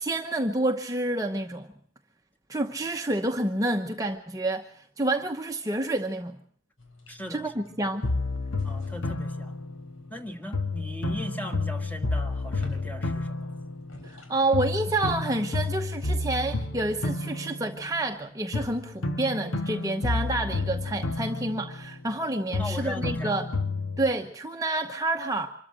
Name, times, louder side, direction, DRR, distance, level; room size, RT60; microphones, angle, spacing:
voice 1, 0.0-1.7 2.5-6.4 7.3-8.1 14.0-23.5 24.0-25.5, right 2 dB, 15° right, 0.9 m, -29 dB
sound 1, 6.8-15.4, left 1 dB, 90° left, 4.1 m, -49 dB
voice 2, 7.1-7.7 8.6-9.6 10.1-13.5 22.6-23.3, equal, 10° left, 1.8 m, -38 dB
sound 2, 8.0-10.2 10.5-14.2 14.5-18.2 18.5-22.2 22.5-24.1, left 3 dB, 70° left, 1.7 m, -31 dB
25.0 x 13.5 x 7.6 m
head